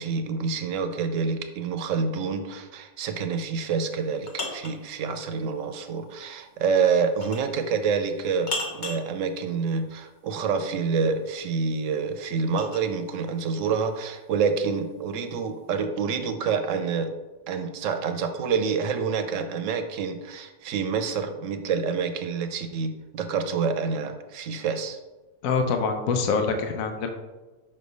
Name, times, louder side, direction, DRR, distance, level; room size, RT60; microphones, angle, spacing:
voice 1, 0.0-17.1 17.5-25.0, right 5 dB, 70° right, 7 dB, 1.0 m, -27 dB
sound 1, 3.8-4.8 7.2-7.5 8.5-9.1 11.3-12.9, left 2 dB, 45° left, 0.8 m, -34 dB
voice 2, 25.4-27.1, left 5 dB, 80° left, 5 dB, 1.0 m, -25 dB
5.5 x 3.3 x 5.2 m, 1.2 s
omnidirectional pair, 1.4 m